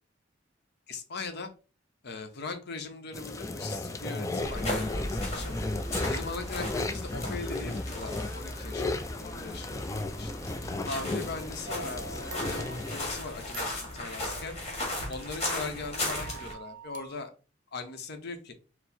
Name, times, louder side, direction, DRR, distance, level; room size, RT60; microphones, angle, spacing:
voice 1, 0.9-1.5 2.0-5.5 6.0-8.9 9.2-9.7 9.9-10.3 10.6-14.5 15.1-17.3 17.7-18.5, left 3 dB, 55° left, 6 dB, 0.7 m, -40 dB
sound 1, 3.1-13.0, left 2 dB, 15° left, 0.3 m, -35 dB
sound 2, 4.4-16.5, left 1 dB, 35° left, 1.4 m, -36 dB
sound 3, 11.6-14.1 15.1-17.2, right 4 dB, 45° right, 0.5 m, -46 dB
4.4 x 2.0 x 4.0 m, 0.35 s
head